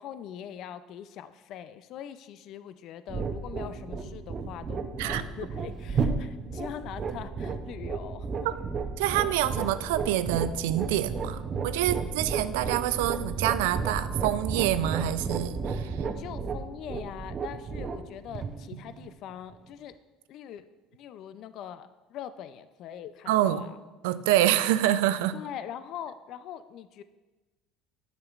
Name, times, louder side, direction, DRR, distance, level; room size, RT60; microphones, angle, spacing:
voice 1, 0.0-8.6 16.1-19.9 20.3-23.8 25.3-27.0, left 10 dB, 60° left, 13 dB, 0.3 m, -42 dB
sound 1, 3.1-19.5, right 4 dB, 40° right, 0.7 m, -33 dB
voice 2, 9.0-16.0 23.3-23.7 24.0-25.4, right 13 dB, 80° right, 13 dB, 0.3 m, -26 dB
9.3 x 7.2 x 2.4 m, 1.2 s
hypercardioid pair, 70°, 0 cm